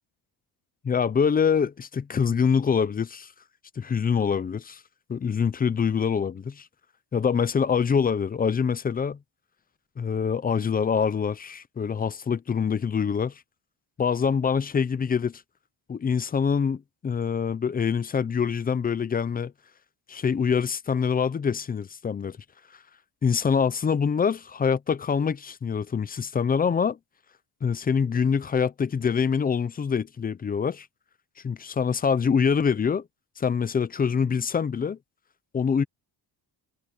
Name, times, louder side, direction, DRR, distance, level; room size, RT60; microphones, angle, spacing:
voice 1, 0.8-3.3 3.8-4.8 5.1-6.7 7.1-9.2 10.0-13.3 14.0-15.4 15.9-19.5 20.1-22.3 23.2-27.0 27.6-30.9 31.4-33.0 33.4-35.0 35.5-35.8, left 6 dB, 20° left, 0.5 m, -25 dB
cardioid pair, 175°, 41 cm